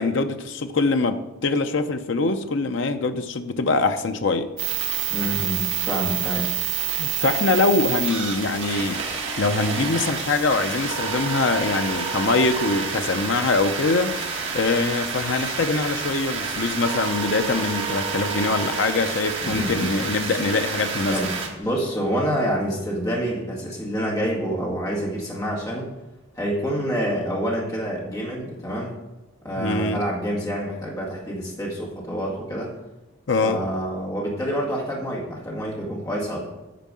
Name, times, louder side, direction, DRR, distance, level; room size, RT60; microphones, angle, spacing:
voice 1, 0.0-4.5 7.0-21.2 29.5-30.0 33.3-33.6, left 3 dB, 55° left, 0.6 m, -23 dB
sound 1, 4.6-21.5, right 6 dB, 60° right, 1.5 m, -28 dB
voice 2, 5.1-6.5 19.4-19.9 21.1-25.9 26.4-29.0 29.4-32.7 33.4-36.4, equal, 15° left, 1.9 m, -27 dB
9.2 x 4.6 x 7.5 m
head